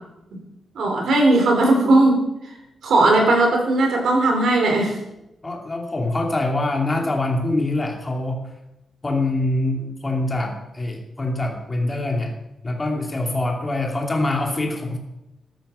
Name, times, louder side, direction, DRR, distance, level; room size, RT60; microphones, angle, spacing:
voice 1, 0.7-2.2 2.8-4.9, right 2 dB, 75° right, 2 dB, 4.4 m, -17 dB
voice 2, 5.4-8.4 9.0-12.3 12.6-15.0, left 2 dB, 20° left, 1 dB, 2.7 m, -24 dB
13.5 x 12.0 x 5.6 m, 0.89 s
wide cardioid pair, 160°, 0 cm